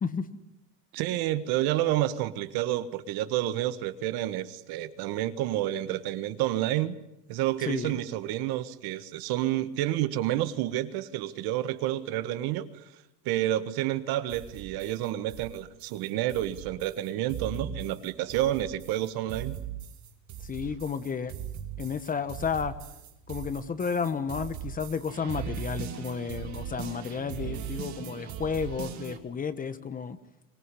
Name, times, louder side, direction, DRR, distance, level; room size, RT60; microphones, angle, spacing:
voice 1, 0.9-7.0 7.3-12.6 13.2-19.6, right 13 dB, 55° right, 12 dB, 1.6 m, -29 dB
voice 2, 7.6-8.0 20.4-21.3 21.8-22.8 23.3-30.2, left 6 dB, 20° left, 13 dB, 1.1 m, -32 dB
sound 1, 14.3-29.2, right 8 dB, 40° right, 3.2 m, -39 dB
24.5 x 19.0 x 9.9 m, 0.85 s
cardioid pair, 150°, 42 cm